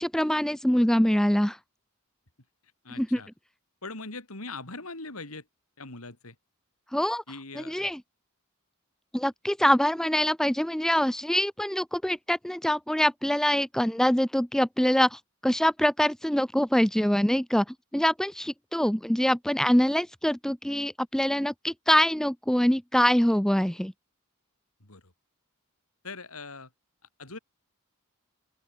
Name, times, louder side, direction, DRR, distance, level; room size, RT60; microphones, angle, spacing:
voice 1, 0.0-1.6 2.9-3.2 6.9-7.2 7.6-8.0 9.1-17.7 17.9-23.9, equal, 5° left, 0.5 m, -24 dB
voice 2, 2.8-3.3 3.8-5.4 5.8-6.3 7.3-7.9 24.8-25.1 26.0-26.7 27.2-27.4, left 3 dB, 85° left, 4.9 m, -41 dB
open air
head